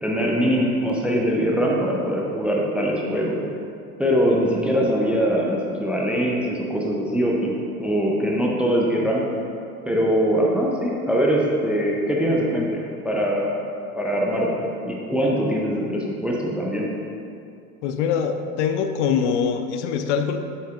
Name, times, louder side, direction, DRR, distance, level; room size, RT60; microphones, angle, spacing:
voice 1, 0.0-3.4 4.0-9.3 9.9-13.6 13.9-16.9, equal, 5° right, -2 dB, 0.4 m, -22 dB
voice 2, 17.8-20.4, left 7 dB, 50° left, 7 dB, 0.5 m, -23 dB
7.9 x 6.9 x 2.3 m, 2.5 s
figure-of-eight pair, 75°, 46 cm